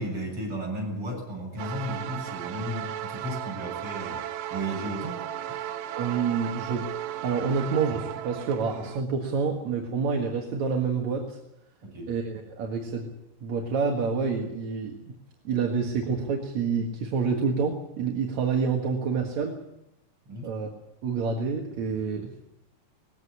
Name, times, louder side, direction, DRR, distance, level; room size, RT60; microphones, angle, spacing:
voice 1, 0.0-4.2 4.5-5.2 11.8-12.1 20.2-20.5, right 1 dB, 35° right, 0 dB, 8.6 m, -34 dB
sound 1, 1.6-9.0, right 11 dB, 85° right, 3.0 m, -36 dB
voice 2, 5.9-6.9 7.2-11.4 12.1-13.1 13.4-15.2 15.4-19.6 20.4-20.7 21.0-22.3, right 5 dB, 55° right, 2 dB, 2.8 m, -28 dB
20.5 x 16.5 x 9.8 m, 0.86 s
omnidirectional pair, 4.2 m